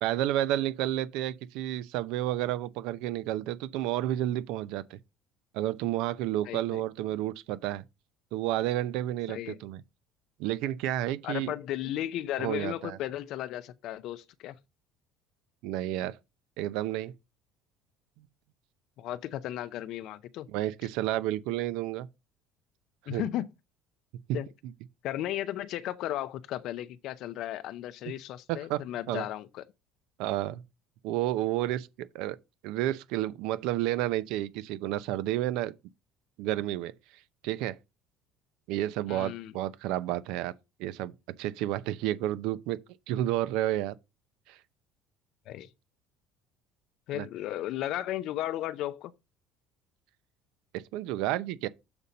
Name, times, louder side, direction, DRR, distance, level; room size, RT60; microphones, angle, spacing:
voice 1, 0.0-5.0 5.5-7.8 8.3-9.8 10.4-11.5 12.4-13.0 15.6-16.2 16.6-17.1 20.5-22.1 23.1-23.2 28.5-28.8 29.1-29.2 30.2-30.6 31.0-32.4 32.6-35.7 36.4-36.9 37.4-37.8 38.7-40.5 40.8-41.1 41.4-42.8 43.1-43.9 44.5-44.6 47.1-47.3 50.7-51.7, right 14 dB, 70° right, 0.6 m, -31 dB
voice 2, 6.4-6.8 9.3-9.6 11.2-14.5 19.0-20.5 23.1-23.5 24.3-24.5 25.0-29.6 39.1-39.5 45.5-45.7 47.1-49.1, left 13 dB, 50° left, 0.5 m, -35 dB
6.9 x 4.2 x 5.1 m
cardioid pair, 175°, 0 cm